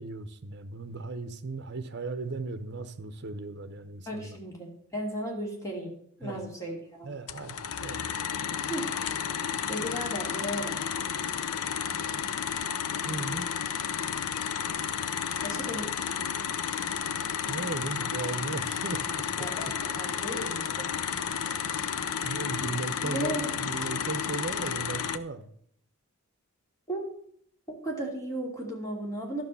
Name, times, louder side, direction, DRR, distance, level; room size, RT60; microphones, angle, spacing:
voice 1, 0.0-4.4 6.2-6.5 7.0-8.0 13.0-13.5 17.5-19.5 22.2-25.5, right 3 dB, 50° right, 10 dB, 0.9 m, -37 dB
voice 2, 4.1-5.9 6.2-7.1 8.7-8.9 9.7-10.8 15.4-15.9 19.4-20.9 22.1-22.3 23.0-23.5 26.9-27.0 27.8-29.4, right 1 dB, 15° left, -1 dB, 2.8 m, -35 dB
sound 1, 7.3-25.2, left 8 dB, 80° left, 0.6 m, -32 dB
12.0 x 6.2 x 7.0 m, 0.67 s
head